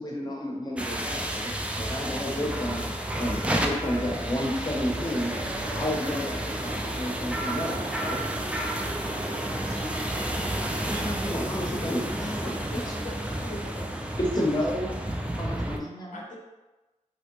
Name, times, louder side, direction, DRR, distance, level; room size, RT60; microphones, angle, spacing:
voice 1, 0.0-2.9 3.2-3.4 3.6-5.3 5.7-8.2 10.8-12.9 14.2-16.2, left 1 dB, 30° left, -2 dB, 0.7 m, -31 dB
sound 1, 0.8-15.8, right 1 dB, 10° right, 0.3 m, -31 dB
voice 2, 3.0-3.6 3.9-4.7 6.6-7.4, right 2 dB, 70° right, 0 dB, 0.5 m, -50 dB
sound 2, 4.7-11.1, right 1 dB, 25° right, 0.7 m, -40 dB
voice 3, 12.4-13.9 16.1-16.4, left 1 dB, 70° left, -2 dB, 0.7 m, -41 dB
3.0 x 2.6 x 2.9 m, 1.1 s
wide cardioid pair, 95°, 13 cm